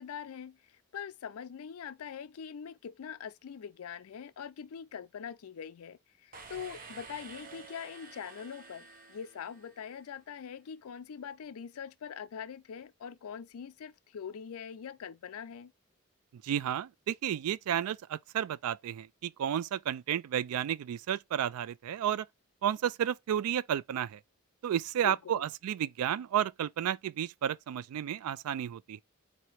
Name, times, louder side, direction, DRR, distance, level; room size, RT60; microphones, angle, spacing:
voice 1, 0.0-15.7 25.0-25.4, left 7 dB, 80° left, 0.4 m, -43 dB
sound 1, 6.3-10.1, right 4 dB, 40° right, 0.7 m, -50 dB
voice 2, 16.4-22.3 22.6-24.2 24.6-29.0, right 10 dB, 85° right, 0.3 m, -32 dB
4.1 x 2.9 x 4.5 m
head